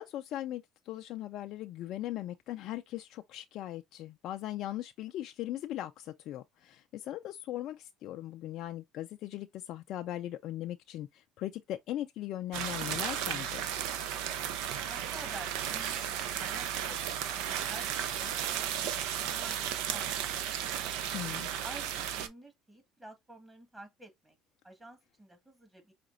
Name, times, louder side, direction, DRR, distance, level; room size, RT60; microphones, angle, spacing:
voice 1, 0.0-13.6 21.1-21.5, left 13 dB, 65° left, 0.3 m, -39 dB
sound 1, 12.5-22.3, right 10 dB, 75° right, 0.6 m, -34 dB
voice 2, 14.8-20.2 21.6-24.4 24.6-25.9, right 1 dB, 15° right, 1.7 m, -50 dB
5.0 x 2.9 x 2.5 m
supercardioid pair, 75°, 0 cm